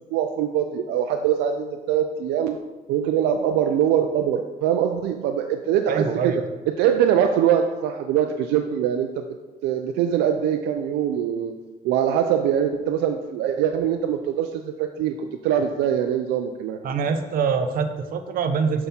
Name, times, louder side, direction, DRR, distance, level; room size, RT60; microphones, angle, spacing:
voice 1, 0.1-2.6 2.9-6.3 6.8-9.3 9.6-11.5 11.8-16.8, right 9 dB, 85° right, 5 dB, 0.5 m, -23 dB
voice 2, 5.9-6.4 16.8-18.9, right 5 dB, 60° right, 8 dB, 0.8 m, -24 dB
7.4 x 5.8 x 4.3 m, 1.2 s
cardioid pair, 110°, 17 cm